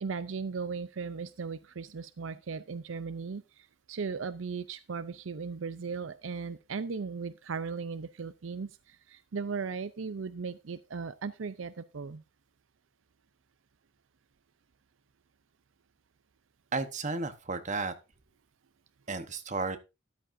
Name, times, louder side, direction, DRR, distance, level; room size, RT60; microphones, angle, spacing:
voice 1, 0.0-12.2, right 5 dB, 75° right, 14 dB, 0.5 m, -37 dB
voice 2, 16.7-18.0 19.1-19.8, right 3 dB, 40° right, 8 dB, 1.1 m, -33 dB
13.5 x 10.0 x 2.6 m, 0.27 s
head